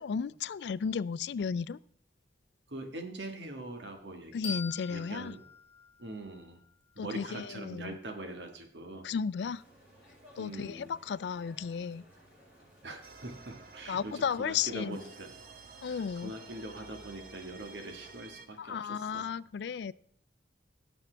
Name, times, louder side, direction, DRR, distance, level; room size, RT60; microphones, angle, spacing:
voice 1, 0.0-1.8 4.3-5.3 7.0-7.9 9.0-9.6 10.4-12.0 13.9-15.0 15.8-16.3 18.6-19.9, left 6 dB, 75° left, 20 dB, 0.3 m, -34 dB
voice 2, 2.7-4.3 4.9-5.4 6.0-6.6 6.9-9.1 10.4-10.9 12.8-15.3 15.9-19.3, right 2 dB, 80° right, 4 dB, 1.6 m, -43 dB
sound 1, 4.4-7.2, left 5 dB, 35° left, 1.1 m, -44 dB
sound 2, 9.4-18.1, right 1 dB, 10° right, 5.6 m, -58 dB
sound 3, 13.0-18.5, right 4 dB, 55° right, 0.8 m, -52 dB
17.5 x 7.1 x 3.4 m, 0.63 s
head